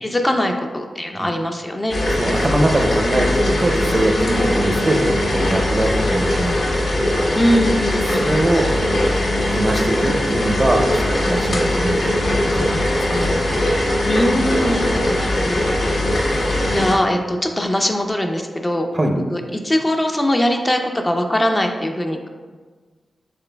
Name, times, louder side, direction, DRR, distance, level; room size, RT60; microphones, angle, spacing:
voice 1, 0.0-2.0 7.3-8.3 14.1-15.6 16.7-18.9 19.3-22.3, equal, 25° left, 3 dB, 0.4 m, -21 dB
sound 1, 1.9-16.9, left 1 dB, 75° left, 0.9 m, -20 dB
voice 2, 2.1-5.0 5.3-6.6 8.1-8.7 9.5-12.3 12.5-13.3 15.1-15.2 18.9-19.2, right 1 dB, 35° right, 3 dB, 0.6 m, -22 dB
6.0 x 3.2 x 2.2 m, 1.5 s
cardioid pair, 55°, 0 cm